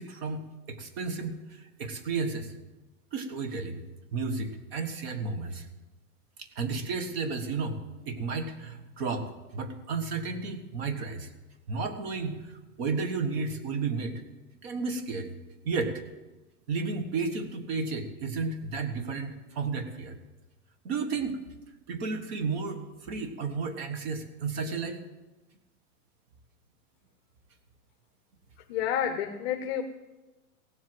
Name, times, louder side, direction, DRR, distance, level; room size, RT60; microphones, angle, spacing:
voice 1, 0.0-2.5 3.1-3.8 4.1-5.7 6.4-7.8 8.1-11.3 11.7-14.2 14.6-15.4 15.6-15.9 16.7-20.2 20.8-21.4 21.9-25.0, right 4 dB, 40° right, 8 dB, 1.5 m, -32 dB
voice 2, 28.7-29.8, left 9 dB, 40° left, 5 dB, 0.9 m, -29 dB
16.5 x 7.8 x 7.8 m, 1.1 s
supercardioid pair, 170°, 46 cm